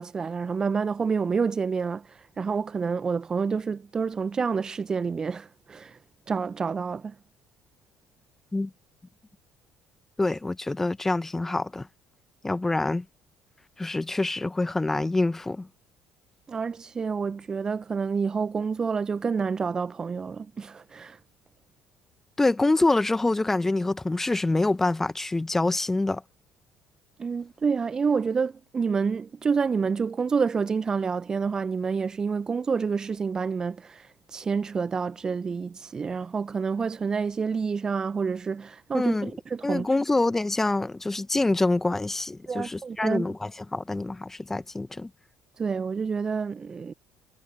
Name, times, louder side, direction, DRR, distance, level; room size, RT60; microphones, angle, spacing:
voice 1, 0.0-6.0 6.3-7.1 16.5-21.2 27.2-39.9 42.5-43.3 45.6-46.9, right 5 dB, 35° right, 1.4 m, -28 dB
voice 2, 10.2-11.9 12.4-13.0 13.8-15.7 22.4-26.2 38.9-39.3 39.6-45.1, left 2 dB, 15° left, 1.8 m, -26 dB
figure-of-eight pair, 55°, 2 cm